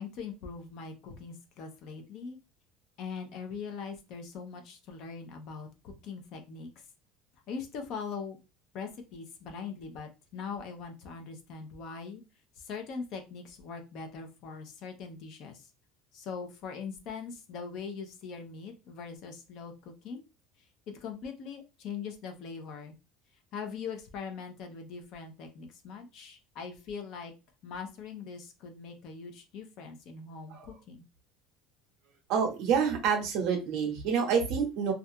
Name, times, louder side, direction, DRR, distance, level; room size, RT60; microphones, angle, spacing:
voice 1, 0.0-2.4 3.0-6.7 7.5-8.4 8.7-12.2 12.6-15.7 16.1-20.2 20.9-22.9 23.5-27.3 27.6-31.0, left 5 dB, 45° left, 5 dB, 0.5 m, -41 dB
voice 2, 32.3-34.9, right 6 dB, 50° right, 3 dB, 0.8 m, -27 dB
2.3 x 2.2 x 2.7 m, 0.28 s
cardioid pair, 175°, 0 cm